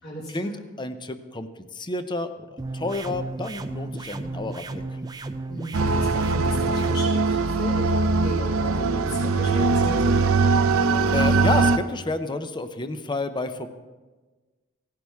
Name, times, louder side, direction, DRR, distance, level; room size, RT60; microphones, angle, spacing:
voice 1, 0.0-0.6 5.5-10.2, equal, 60° left, -10 dB, 4.0 m, -35 dB
voice 2, 0.8-2.5 2.7-4.8 10.7-10.8 11.1-13.7, left 2 dB, 20° left, 10 dB, 0.7 m, -30 dB
sound 1, 2.6-7.0, right 2 dB, 20° right, 0.5 m, -34 dB
sound 2, 5.7-11.8, right 3 dB, 80° right, 0.6 m, -21 dB
17.0 x 10.5 x 3.6 m, 1.3 s
head